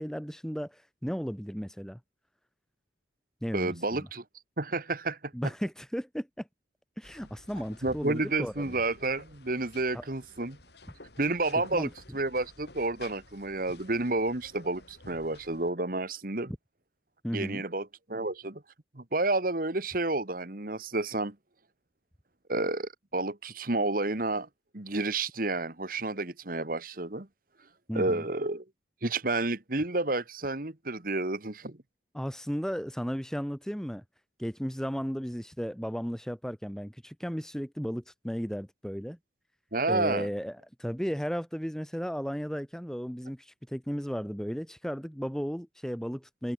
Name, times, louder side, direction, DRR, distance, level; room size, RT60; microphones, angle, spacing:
voice 1, 0.0-2.0 3.4-4.1 5.3-6.5 7.0-8.7 9.9-10.0 11.7-11.9 17.2-17.6 27.9-28.2 32.1-34.0 34.4-39.2 39.9-46.5, equal, 5° left, 4.8 m, -35 dB
voice 2, 3.5-4.2 4.6-5.3 7.8-10.6 11.2-16.5 17.3-18.6 18.9-21.3 22.5-24.5 24.7-27.3 27.9-28.6 29.0-31.8 39.7-40.3, right 2 dB, 50° right, 1.7 m, -30 dB
sound 1, 7.0-15.7, left 2 dB, 60° left, 5.5 m, -52 dB
head